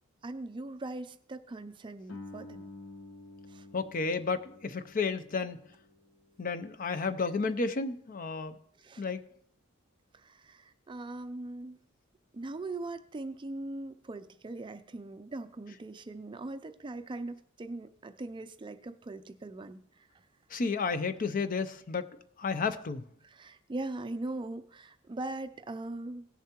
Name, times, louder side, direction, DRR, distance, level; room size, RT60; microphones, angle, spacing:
voice 1, 0.2-2.7 3.5-3.7 8.8-9.0 10.1-11.8 12.3-19.8 20.1-20.2 23.2-26.3, right 2 dB, 25° right, 10 dB, 0.4 m, -40 dB
Guitar, 2.1-7.4, left 2 dB, 65° left, 0.9 m, -50 dB
voice 2, 3.7-5.6 6.4-8.6 9.0-9.3 20.5-23.0, left 4 dB, 40° left, 12 dB, 0.5 m, -32 dB
17.5 x 7.0 x 2.9 m, 0.67 s
head